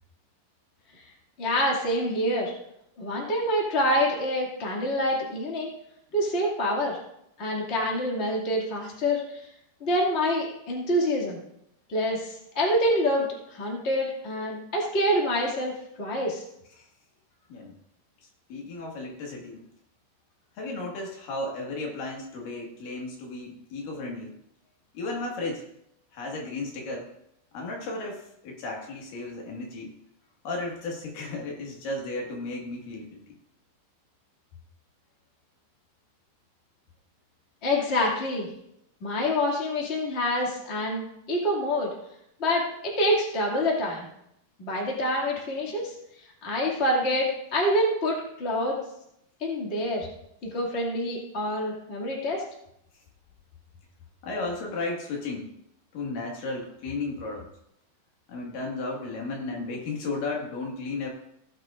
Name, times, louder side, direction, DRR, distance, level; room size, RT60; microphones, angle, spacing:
voice 1, 1.4-2.5 3.0-5.7 6.1-7.0 7.4-9.4 9.8-11.4 11.9-15.7 16.0-16.4 37.6-38.5 39.0-41.9 42.4-44.1 44.6-45.9 46.4-48.8 49.4-50.1 50.5-52.4, equal, 25° left, -3 dB, 2.0 m, -26 dB
voice 2, 18.2-19.6 20.6-24.4 24.9-25.7 26.1-27.1 27.5-29.9 30.4-33.4 54.2-55.5 55.9-57.5 58.3-61.1, left 2 dB, 80° left, -1 dB, 3.5 m, -34 dB
16.5 x 9.5 x 2.5 m, 0.78 s
omnidirectional pair, 3.8 m